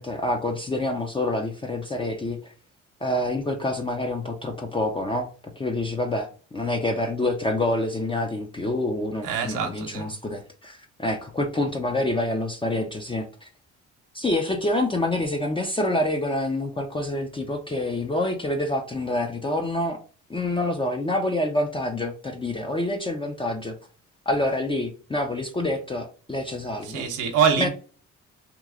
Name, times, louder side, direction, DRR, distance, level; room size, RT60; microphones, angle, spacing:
voice 1, 0.0-2.5 3.0-5.3 5.6-13.5 14.1-20.0 20.3-23.8 24.3-27.0 27.6-27.7, left 1 dB, 15° left, 0.5 m, -27 dB
voice 2, 9.2-10.1 26.8-27.7, right 7 dB, 90° right, 0.8 m, -24 dB
3.0 x 2.4 x 3.6 m
cardioid pair, 90°, 30 cm